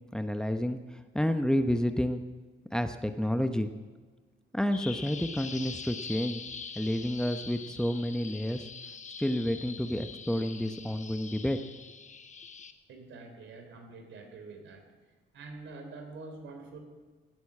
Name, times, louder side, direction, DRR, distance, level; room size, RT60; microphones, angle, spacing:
voice 1, 0.1-2.2 2.7-3.7 4.5-6.4 6.8-8.7 9.2-11.6, equal, 5° left, 8 dB, 0.9 m, -30 dB
Bird vocalization bird call bird song, 4.7-12.7, left 5 dB, 40° left, 1.2 m, -44 dB
voice 2, 12.9-14.9 15.3-16.8, right 3 dB, 70° right, 4 dB, 3.5 m, -46 dB
17.5 x 8.2 x 8.6 m, 1.4 s
cardioid pair, 90°, 20 cm